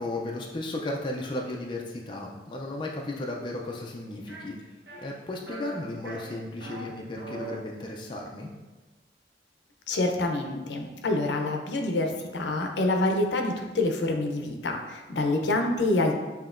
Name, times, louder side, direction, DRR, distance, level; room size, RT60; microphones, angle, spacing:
voice 1, 0.0-8.5, left 2 dB, 25° left, 0 dB, 0.4 m, -35 dB
sound 1, 4.3-4.4 4.9-5.1 5.5-5.8 6.1-6.8 7.2-7.6, right 4 dB, 65° right, 0.8 m, -41 dB
voice 2, 9.9-16.1, left 2 dB, 80° left, 3 dB, 0.5 m, -27 dB
6.9 x 2.8 x 2.5 m, 1.2 s
head